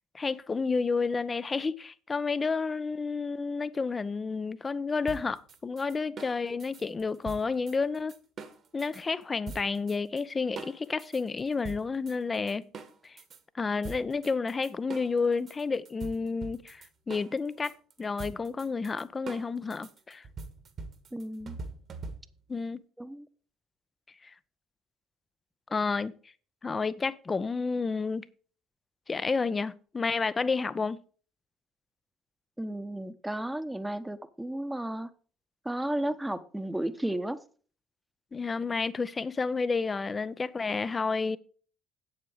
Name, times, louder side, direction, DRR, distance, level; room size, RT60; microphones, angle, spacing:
voice 1, 0.1-8.1 8.7-12.6 13.0-13.2 13.5-17.7 18.0-20.2 22.5-22.8 25.7-26.1 26.6-28.3 29.1-31.0 38.3-41.4, left 4 dB, 25° left, 0.7 m, -30 dB
sound 1, 5.1-9.0 9.5-10.2 10.6-13.4 13.8-22.5, right 4 dB, 40° right, 1.6 m, -44 dB
voice 2, 21.1-21.6 23.0-23.3 32.6-35.1 35.6-37.4, right 1 dB, 5° right, 1.0 m, -33 dB
8.9 x 8.8 x 4.8 m
figure-of-eight pair, 55°, 0 cm